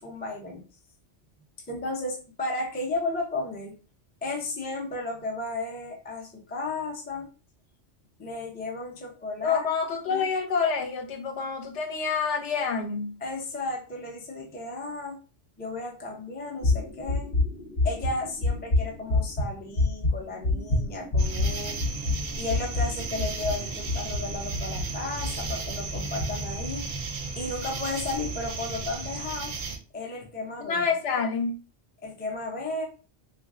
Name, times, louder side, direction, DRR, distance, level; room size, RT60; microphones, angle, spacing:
voice 1, 0.0-0.6 1.7-3.8 4.2-7.3 8.2-9.7 10.1-10.3 13.2-15.2 15.6-17.3 17.8-21.8 22.4-26.9 27.4-29.6 29.9-30.8 32.0-32.9, left 2 dB, 15° left, 0.3 m, -34 dB
voice 2, 9.4-13.1 30.6-31.6, left 5 dB, 75° left, 0.9 m, -27 dB
sound 1, 16.6-25.6 25.9-26.3 26.7-27.0, left 2 dB, 50° left, 0.8 m, -27 dB
sound 2, 21.2-29.8, right 3 dB, 60° right, 0.5 m, -34 dB
3.0 x 2.5 x 2.4 m
omnidirectional pair, 1.2 m